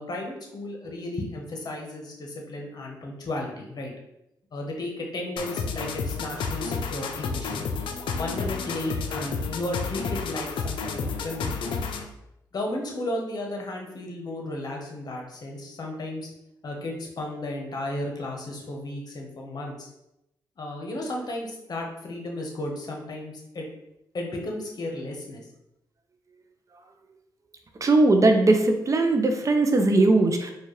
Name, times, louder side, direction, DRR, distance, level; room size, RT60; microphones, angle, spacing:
voice 1, 0.0-3.9 4.5-7.6 8.1-11.6 12.5-16.3 16.6-19.9 20.6-23.7 24.1-25.4, left 1 dB, 55° left, 1 dB, 1.0 m, -34 dB
sound 1, 5.4-12.2, left 5 dB, 80° left, 0.4 m, -31 dB
voice 2, 27.8-30.5, right 2 dB, 40° right, 5 dB, 0.5 m, -19 dB
4.3 x 2.3 x 3.2 m, 0.85 s
cardioid pair, 65°, 8 cm